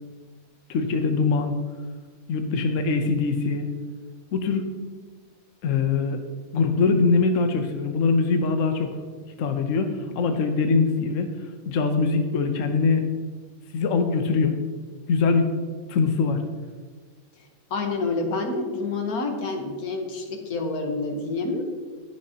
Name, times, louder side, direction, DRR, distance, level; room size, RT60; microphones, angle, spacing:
voice 1, 0.7-1.5 2.3-3.7 4.3-4.7 5.6-6.2 6.5-9.0 9.4-11.3 11.6-13.0 13.7-14.6 15.1-15.5 15.9-16.4, left 4 dB, 65° left, 6 dB, 1.1 m, -22 dB
voice 2, 17.7-21.7, left 3 dB, 90° left, 3 dB, 1.7 m, -28 dB
19.0 x 6.4 x 2.8 m, 1.5 s
omnidirectional pair, 1.5 m